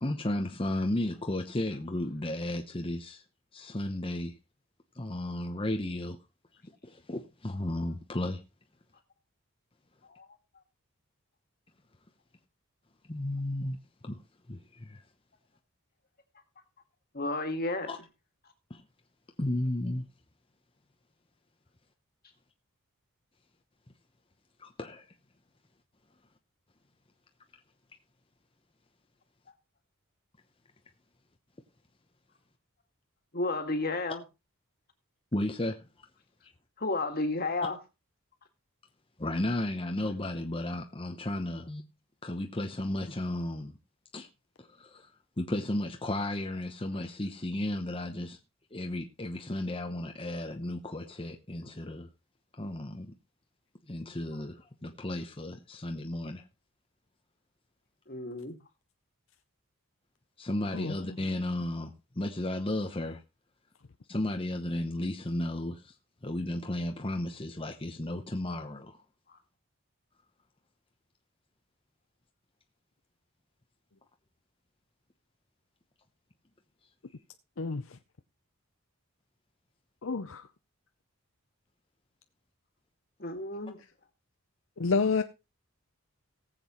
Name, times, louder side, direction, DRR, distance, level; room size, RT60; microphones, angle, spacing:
voice 1, 0.0-3.2 3.5-4.4 4.9-6.2 6.8-8.4 13.1-14.2 14.5-15.0 17.9-18.0 18.7-18.8 19.4-20.1 24.6-25.0 35.3-35.8 36.4-36.5 39.2-41.9 42.2-43.7 44.1-44.3 44.6-45.1 45.4-48.4 48.7-52.1 52.5-53.1 53.9-56.4 60.4-63.2 64.1-66.0 66.2-69.0, left 1 dB, 25° left, 0.9 m, -34 dB
voice 2, 17.1-17.9 33.3-34.2 36.8-37.8 54.3-54.4 58.1-58.6 83.2-83.8, left 2 dB, 45° left, 2.0 m, -32 dB
voice 3, 77.6-78.0 80.0-80.5 84.8-85.2, left 4 dB, 60° left, 0.6 m, -29 dB
18.5 x 7.8 x 3.0 m
head